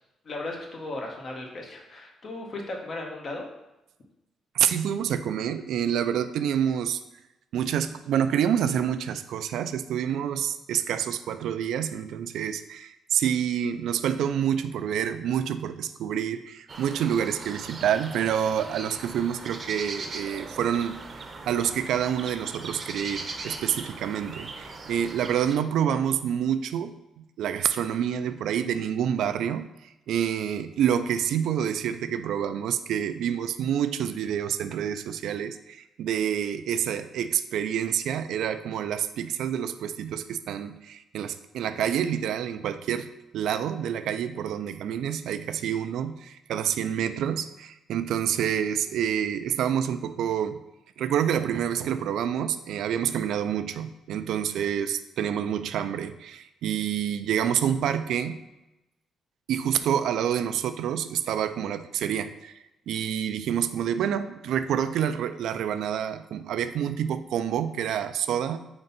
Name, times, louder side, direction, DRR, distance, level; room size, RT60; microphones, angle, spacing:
voice 1, 0.2-3.4, left 2 dB, 45° left, 0 dB, 1.3 m, -36 dB
voice 2, 4.5-7.0 7.5-21.0 21.5-50.6 51.0-58.4 59.5-62.5 62.9-68.6, right 9 dB, 80° right, 11 dB, 0.3 m, -28 dB
sound 1, 16.7-25.6, right 3 dB, 40° right, 0.7 m, -40 dB
4.4 x 3.9 x 5.6 m, 0.95 s
cardioid pair, 90°, 0 cm